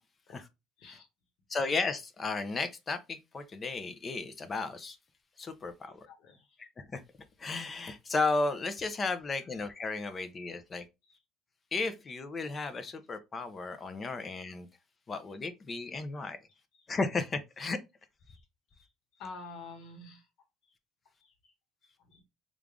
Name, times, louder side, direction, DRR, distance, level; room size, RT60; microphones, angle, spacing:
voice 1, 1.5-5.0 5.4-6.0 6.6-7.0 7.4-10.8 11.7-14.7 15.1-16.4 16.9-17.8, left 3 dB, 30° left, 0.6 m, -34 dB
voice 2, 6.1-6.6 11.0-11.2 16.8-16.9 18.3-18.4 18.7-18.9 19.2-20.3 21.2-21.5 21.8-22.2, left 3 dB, 75° left, 1.1 m, -49 dB
3.3 x 2.4 x 3.6 m
cardioid pair, 115°, 0 cm